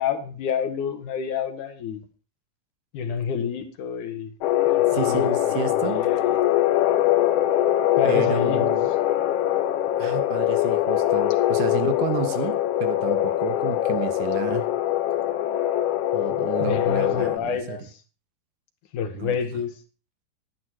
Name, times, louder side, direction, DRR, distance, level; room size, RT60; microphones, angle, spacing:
voice 1, 0.0-2.1 2.9-4.3 4.7-6.4 8.0-8.7 16.6-18.0 18.9-19.8, left 7 dB, 70° left, 2.8 m, -29 dB
sound 1, 4.4-17.4, left 13 dB, 90° left, 1.3 m, -22 dB
voice 2, 4.9-6.0 8.0-8.9 10.0-14.7 16.1-17.8 19.2-19.4, right 9 dB, 75° right, 2.7 m, -31 dB
11.5 x 11.0 x 4.5 m
omnidirectional pair, 3.8 m